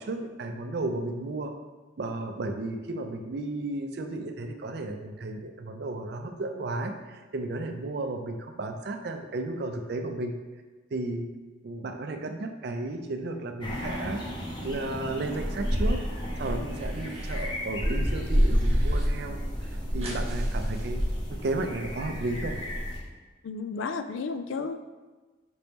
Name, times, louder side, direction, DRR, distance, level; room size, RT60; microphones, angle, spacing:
voice 1, 0.0-1.5 2.0-10.3 10.9-11.3 11.6-14.2 14.6-16.0 16.4-21.0 21.3-22.6, right 2 dB, 55° right, 5 dB, 0.4 m, -33 dB
sound 1, 13.6-23.0, equal, 25° left, 0.7 m, -29 dB
sound 2, 15.3-15.9 16.2-17.5 17.9-19.1 19.3-19.4 19.6-21.5, right 2 dB, 30° right, 0.8 m, -46 dB
voice 2, 23.4-24.8, left 4 dB, 80° left, 9 dB, 0.3 m, -32 dB
5.1 x 2.9 x 3.4 m, 1.3 s
head